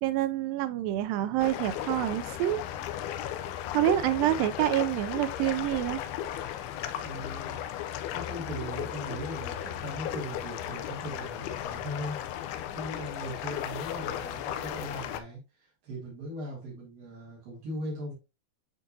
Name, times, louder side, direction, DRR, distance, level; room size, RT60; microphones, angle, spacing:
voice 1, 0.0-2.6 3.7-6.0, right 13 dB, 85° right, 2.0 m, -27 dB
sound 1, 1.4-15.2, left 11 dB, 85° left, 2.7 m, -36 dB
voice 2, 7.0-7.6 8.1-12.2 12.7-18.1, equal, 65° right, 3.9 m, -39 dB
10.0 x 3.8 x 2.7 m
omnidirectional pair, 4.5 m